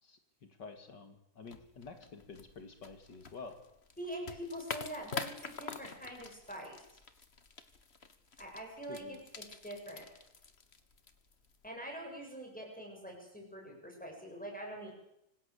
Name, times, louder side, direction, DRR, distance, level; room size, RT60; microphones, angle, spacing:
voice 1, 0.6-3.6 8.9-9.2, left 4 dB, 75° left, 7 dB, 2.8 m, -49 dB
sound 1, 1.4-11.7, left 4 dB, 40° left, 1.8 m, -47 dB
voice 2, 4.0-6.9 8.4-10.1 11.6-14.9, equal, 5° left, 1 dB, 7.8 m, -44 dB
26.0 x 19.0 x 8.4 m, 0.82 s
omnidirectional pair, 1.9 m